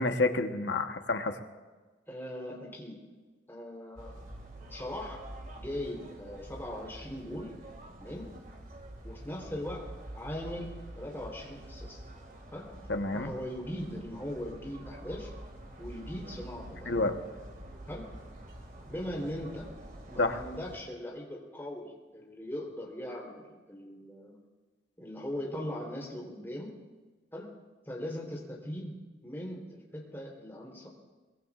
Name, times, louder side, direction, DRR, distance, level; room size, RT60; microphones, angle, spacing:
voice 1, 0.0-1.4 12.9-13.3 16.9-17.2 20.2-20.4, left 3 dB, 75° left, 6 dB, 1.2 m, -28 dB
voice 2, 2.1-3.0 3.5-4.1 4.7-5.2 5.6-7.5 8.0-8.3 9.0-9.9 10.1-12.0 12.5-12.7 13.1-15.3 15.8-17.1 17.9-18.1 18.9-19.7 20.1-24.3 25.0-26.7 27.3-27.5 27.9-29.0 29.2-30.9, left 1 dB, 15° left, -3 dB, 3.6 m, -40 dB
sound 1, 4.0-20.8, right 1 dB, 50° right, 2.2 m, -47 dB
23.5 x 22.0 x 2.5 m, 1.3 s
head